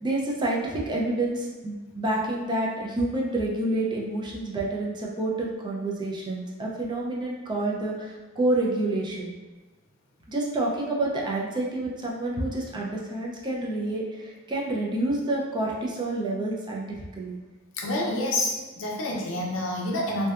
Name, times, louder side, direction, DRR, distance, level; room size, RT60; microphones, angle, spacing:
voice 1, 0.0-9.3 10.3-17.4, right 2 dB, 20° right, -3 dB, 0.3 m, -28 dB
voice 2, 17.7-20.3, left 1 dB, 65° left, -2 dB, 0.5 m, -28 dB
2.6 x 2.2 x 2.3 m, 1.2 s
head